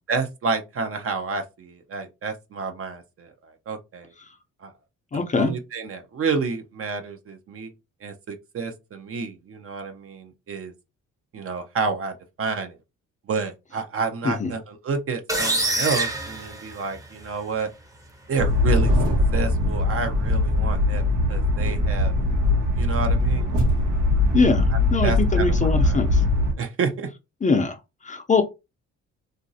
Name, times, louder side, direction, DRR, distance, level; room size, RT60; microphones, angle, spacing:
voice 1, 0.1-4.1 4.6-4.7 5.1-7.7 8.0-10.7 11.3-12.8 13.3-17.7 18.3-18.9 19.3-21.0 21.3-22.1 22.7-23.5 24.7-26.0 26.6-27.1, right 4 dB, 45° right, 0.7 m, -29 dB
voice 2, 5.1-5.5 14.2-14.5 24.3-24.7 24.9-26.2 27.4-27.8 28.0-28.4, left 4 dB, 25° left, 0.5 m, -22 dB
sound 1, 15.3-17.2, right 2 dB, 10° right, 0.7 m, -26 dB
sound 2, 18.4-26.5, left 2 dB, 85° right, 1.1 m, -21 dB
3.0 x 2.5 x 2.6 m
cardioid pair, 90°, 30 cm